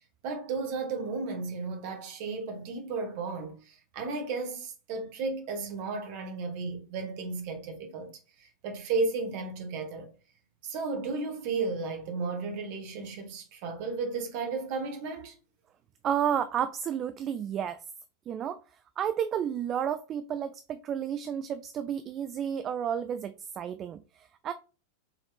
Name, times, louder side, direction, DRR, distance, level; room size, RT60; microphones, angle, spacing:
voice 1, 0.2-8.1 8.4-10.1 10.6-15.3, right 4 dB, 45° right, 1.4 m, -34 dB
voice 2, 16.0-17.8 18.3-18.6 19.0-24.5, right 9 dB, 30° right, 0.3 m, -31 dB
6.1 x 3.5 x 2.3 m
figure-of-eight pair, 90°, 0 cm